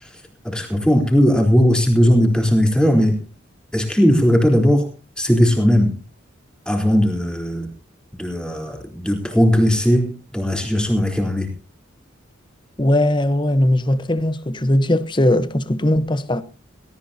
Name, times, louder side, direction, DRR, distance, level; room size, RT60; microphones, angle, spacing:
voice 1, 0.4-3.2 3.7-4.9 5.2-5.9 6.7-7.7 8.2-11.5, equal, 5° left, 3.9 m, -17 dB
voice 2, 12.8-16.4, left 1 dB, 25° left, 1.0 m, -19 dB
18.5 x 18.0 x 2.9 m
head